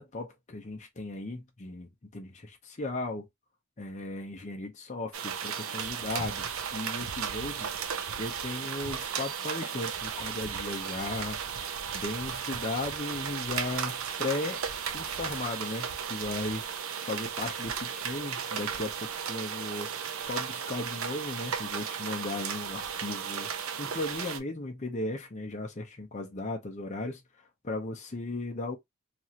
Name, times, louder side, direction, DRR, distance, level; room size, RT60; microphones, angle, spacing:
voice 1, 0.0-3.3 3.8-7.7 8.2-11.4 11.9-14.6 14.9-16.6 17.0-19.9 20.2-23.5 23.8-27.2 27.6-28.8, left 2 dB, 35° left, 0.6 m, -36 dB
sound 1, 5.1-24.4, right 7 dB, 85° right, 0.5 m, -35 dB
3.0 x 2.5 x 2.8 m
head